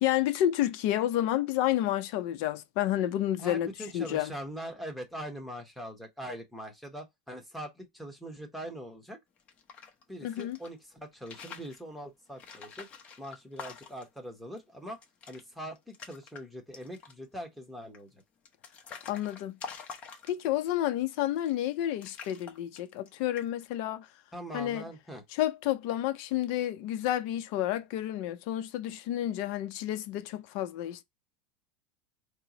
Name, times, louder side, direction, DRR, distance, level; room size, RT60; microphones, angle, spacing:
voice 1, 0.0-3.7 3.9-4.3 10.2-10.6 19.1-19.6 20.3-24.1 24.5-24.8 25.3-31.0, left 12 dB, 60° left, 0.6 m, -30 dB
voice 2, 3.4-9.2 10.1-12.9 13.2-15.0 15.3-18.2 24.3-25.2, equal, ahead, 1.0 m, -42 dB
sound 1, 9.4-10.7 11.1-11.8 12.4-14.2 14.6-14.7 14.9-15.4 15.7-16.4 16.7-17.3 17.9-20.6 21.3-21.7 22.0-23.1 23.4-23.7, left 5 dB, 30° left, 0.9 m, -46 dB
4.4 x 2.1 x 3.9 m
supercardioid pair, 135°, 4 cm